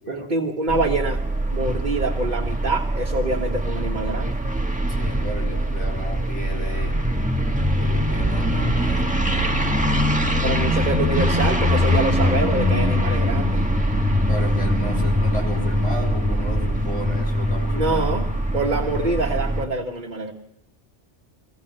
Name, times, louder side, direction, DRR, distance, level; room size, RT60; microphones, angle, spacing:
voice 1, 0.1-1.2 1.5-4.4 10.4-13.6 17.7-20.3, right 2 dB, 40° right, 1 dB, 1.5 m, -25 dB
sound 1, 0.7-19.7, equal, 5° right, 1.4 m, -22 dB
voice 2, 4.9-6.9 7.8-9.2 14.3-18.1, left 1 dB, 75° left, -1 dB, 6.6 m, -34 dB
23.5 x 17.0 x 7.6 m, 0.88 s
omnidirectional pair, 1.2 m